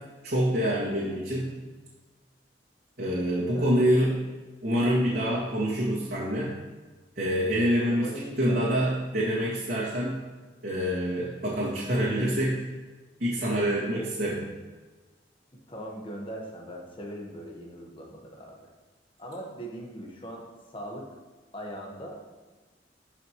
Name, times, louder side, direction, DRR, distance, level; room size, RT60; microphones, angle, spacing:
voice 1, 0.2-1.5 3.0-4.2 4.6-6.5 7.2-8.1 8.4-10.2 10.6-12.6 13.2-14.5, equal, 60° right, -9 dB, 2.1 m, -26 dB
voice 2, 3.3-3.9 7.9-8.7 15.7-18.7 19.2-21.1 21.5-22.2, equal, 30° left, 0 dB, 1.4 m, -40 dB
12.5 x 5.7 x 3.1 m, 1.3 s
head